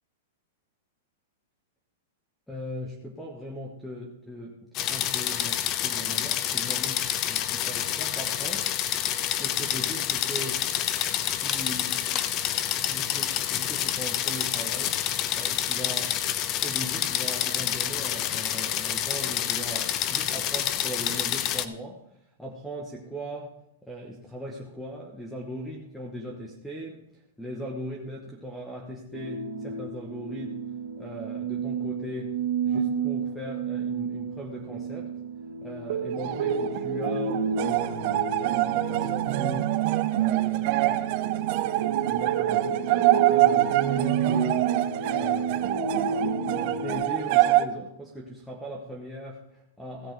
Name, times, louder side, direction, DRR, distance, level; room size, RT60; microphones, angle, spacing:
voice 1, 2.5-8.7 9.4-10.6 11.3-15.0 15.3-16.1 16.6-22.0 22.4-23.5 23.8-27.0 27.4-30.6 31.0-32.3 32.6-35.1 35.6-39.7 40.1-41.3 42.1-44.7 45.2-50.1, equal, ahead, -1 dB, 1.0 m, -39 dB
sound 1, 4.8-21.7, left 11 dB, 25° left, 0.5 m, -28 dB
sound 2, 29.1-46.9, right 7 dB, 65° right, 1.2 m, -30 dB
sound 3, 36.1-47.7, right 15 dB, 35° right, 0.5 m, -26 dB
16.0 x 6.3 x 4.6 m, 0.79 s
supercardioid pair, 170°, 0 cm